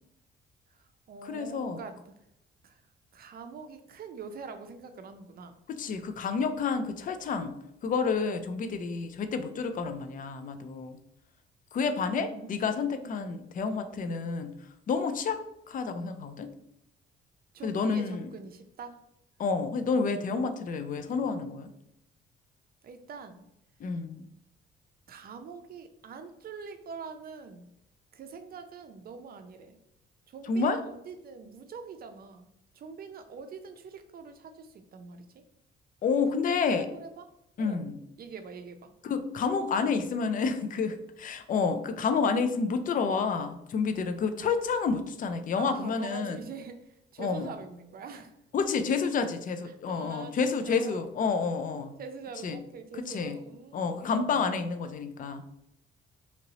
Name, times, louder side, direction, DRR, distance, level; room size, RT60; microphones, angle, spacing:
voice 1, 0.7-2.0 2.6-2.8 3.1-5.6 12.1-13.4 14.0-14.2 17.5-19.0 22.8-23.4 25.1-27.6 28.1-29.8 30.3-32.5 32.7-35.3 36.3-37.3 37.6-37.9 38.2-38.9 45.6-48.3 49.7-51.1 52.0-54.5, right 5 dB, 50° right, 7 dB, 0.5 m, -44 dB
voice 2, 1.2-1.8 5.7-7.6 7.8-11.0 11.7-14.5 14.9-15.4 15.7-16.5 17.6-18.3 19.4-21.7 23.8-24.2 30.5-30.8 36.0-36.9 37.6-37.9 39.0-46.4 47.2-47.5 48.5-51.9 52.4-52.6 52.9-53.4 53.7-55.4, left 5 dB, 45° left, 9 dB, 0.4 m, -29 dB
2.9 x 2.6 x 2.9 m, 0.78 s
cardioid pair, 90°, 20 cm